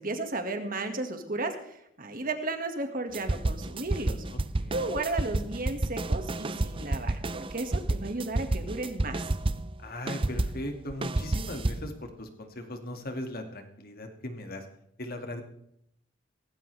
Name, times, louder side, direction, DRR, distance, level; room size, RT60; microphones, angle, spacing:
voice 1, 0.0-4.2 4.7-9.3, right 2 dB, 45° right, 6 dB, 2.0 m, -34 dB
sound 1, 3.1-9.8 10.1-11.9, right 2 dB, 25° right, 0.6 m, -30 dB
voice 2, 4.3-4.8 9.8-14.7 15.0-15.4, left 1 dB, 50° left, 5 dB, 2.2 m, -38 dB
17.5 x 16.0 x 3.5 m, 0.73 s
head